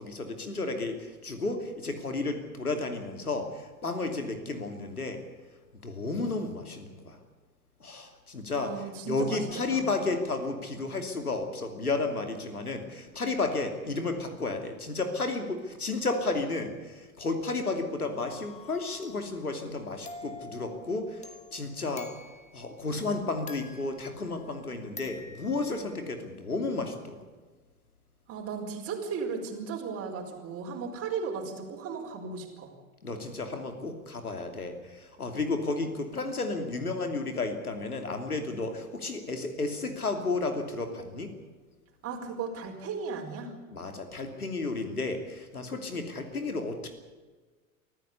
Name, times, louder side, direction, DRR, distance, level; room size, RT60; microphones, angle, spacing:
voice 1, 0.0-5.2 5.7-7.2 7.8-21.2 21.5-22.1 22.5-27.2 33.0-41.3 43.7-46.9, left 3 dB, 85° left, 6 dB, 2.9 m, -32 dB
voice 2, 8.5-9.4 9.7-9.9 28.3-32.7 42.0-43.5, right 5 dB, 30° right, 2 dB, 4.7 m, -36 dB
sound 1, 18.3-22.7 23.5-24.6 25.0-26.0, left 3 dB, 15° left, 2.0 m, -47 dB
24.5 x 14.5 x 8.4 m, 1.4 s
figure-of-eight pair, 85°, 44 cm